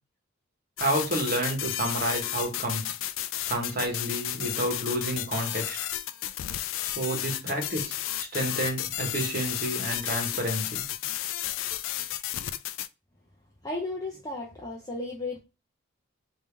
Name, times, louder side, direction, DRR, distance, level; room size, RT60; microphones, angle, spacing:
sound 1, 0.8-12.9, left 13 dB, 70° left, 0.3 m, -33 dB
voice 1, 0.8-2.9 3.5-5.8 6.8-10.8, right 1 dB, 45° right, 1.2 m, -30 dB
voice 2, 13.6-15.4, left 2 dB, 20° left, 0.6 m, -34 dB
3.5 x 2.7 x 3.2 m
head